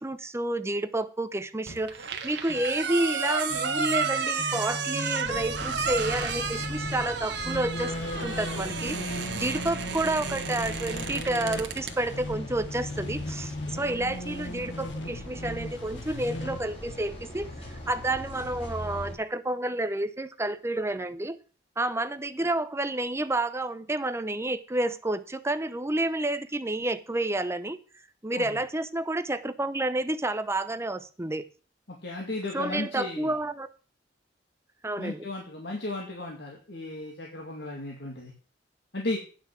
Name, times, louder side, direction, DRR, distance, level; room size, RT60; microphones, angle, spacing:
voice 1, 0.0-7.9 8.2-9.0 9.3-17.5 17.9-21.4 21.8-27.8 28.2-31.4 32.5-33.7 34.8-35.3, right 2 dB, 15° right, 0.7 m, -30 dB
sound 1, 1.7-12.0, right 5 dB, 65° right, 1.4 m, -32 dB
sound 2, 3.5-16.6, left 1 dB, 80° left, 1.1 m, -38 dB
sound 3, 5.3-19.1, left 1 dB, 35° left, 3.5 m, -41 dB
voice 2, 31.9-33.3 35.0-38.3 38.9-39.2, left 2 dB, 65° left, 2.2 m, -35 dB
9.6 x 5.7 x 7.4 m
head